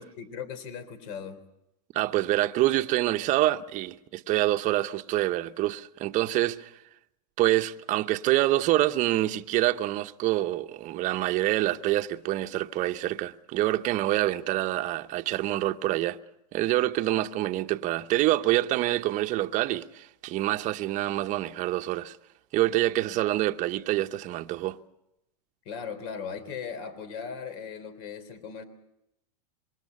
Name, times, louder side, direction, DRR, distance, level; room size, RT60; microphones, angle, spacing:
voice 1, 0.0-1.4 23.1-23.2 25.7-28.6, left 6 dB, 55° left, 3.5 m, -38 dB
voice 2, 1.9-6.7 7.4-16.2 16.5-22.2 22.5-24.8, right 15 dB, 35° right, 1.0 m, -26 dB
26.0 x 23.0 x 5.4 m
hypercardioid pair, 125°, 20 cm